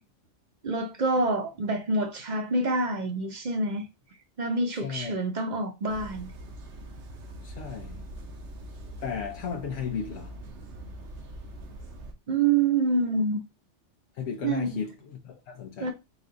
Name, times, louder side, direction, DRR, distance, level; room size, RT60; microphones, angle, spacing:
voice 1, 0.6-3.8 4.4-6.3 12.3-13.4 14.4-14.8 15.8-15.9, right 3 dB, 45° right, 0.8 m, -27 dB
voice 2, 4.8-5.1 7.4-8.1 9.0-10.4 14.2-15.9, left 6 dB, 70° left, 0.9 m, -35 dB
sound 1, 5.9-12.1, right 1 dB, 70° right, 1.1 m, -43 dB
4.1 x 2.4 x 3.8 m
omnidirectional pair, 1.3 m